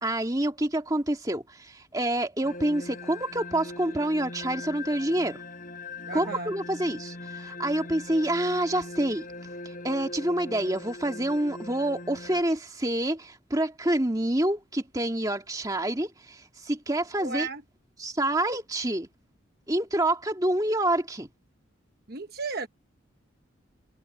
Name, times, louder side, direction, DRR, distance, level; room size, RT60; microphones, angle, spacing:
voice 1, 0.0-5.4 6.1-9.3 9.8-17.5 18.0-19.1 19.7-21.3, right 1 dB, 15° right, 2.2 m, -27 dB
sound 1, 2.4-12.4, left 2 dB, 40° left, 5.2 m, -40 dB
voice 2, 6.1-6.5 17.2-17.6 22.1-22.7, right 4 dB, 50° right, 1.1 m, -34 dB
head